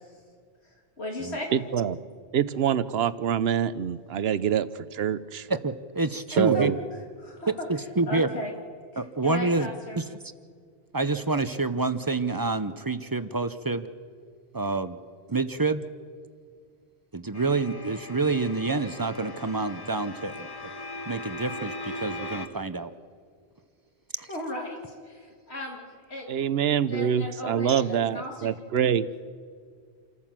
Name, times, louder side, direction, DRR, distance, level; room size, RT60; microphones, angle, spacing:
voice 1, 0.6-1.5 6.3-6.8 7.2-7.5 8.1-8.5 9.2-10.0 24.3-25.8 26.1-26.4 26.9-28.5 28.8-28.9, left 1 dB, 75° left, 0 dB, 2.8 m, -36 dB
voice 2, 1.5-2.0 2.3-5.5 6.4-6.7 26.3-29.1, right 8 dB, 70° right, 16 dB, 1.0 m, -25 dB
voice 3, 5.5-6.7 7.5-8.3 9.0-9.7 10.0-10.1 10.9-13.9 14.5-15.0 15.3-15.9 17.1-20.5 21.1-22.9 24.2-24.3, right 3 dB, 25° right, 12 dB, 0.6 m, -27 dB
sound 1, 17.3-22.5, left 1 dB, 20° left, 1.3 m, -39 dB
28.0 x 14.0 x 7.4 m, 2.1 s
omnidirectional pair, 1.1 m